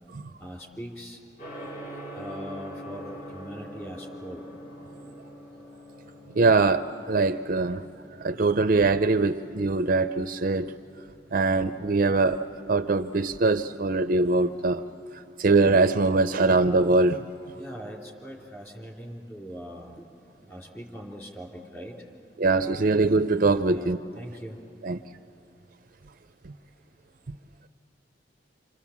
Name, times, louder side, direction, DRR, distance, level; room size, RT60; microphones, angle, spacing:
voice 1, 0.4-1.2 2.1-4.5 17.5-20.1 20.4-22.2 23.7-24.6, equal, 15° left, -1 dB, 3.5 m, -41 dB
Gong, 1.4-20.3, equal, 45° left, 6.6 m, -47 dB
voice 2, 6.4-7.8 8.2-10.7 11.3-12.4 12.7-14.8 15.4-17.2 22.4-24.0 24.8-25.0, right 3 dB, 50° right, 10 dB, 0.5 m, -22 dB
27.5 x 27.0 x 7.3 m, 2.5 s
head